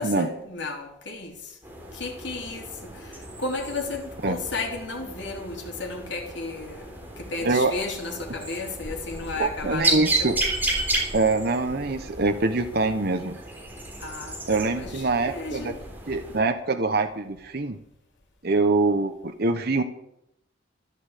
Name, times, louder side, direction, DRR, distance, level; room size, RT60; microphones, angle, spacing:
voice 1, 0.0-1.5 1.9-6.9 7.2-10.4 14.0-15.8, left 3 dB, 60° left, 3.5 m, -34 dB
sound 1, 1.6-16.4, right 2 dB, 10° right, 3.7 m, -33 dB
voice 2, 9.4-10.4 11.1-13.3 14.5-15.7 16.1-17.8 18.4-19.8, right 3 dB, 50° right, 1.0 m, -24 dB
14.0 x 11.5 x 8.3 m
head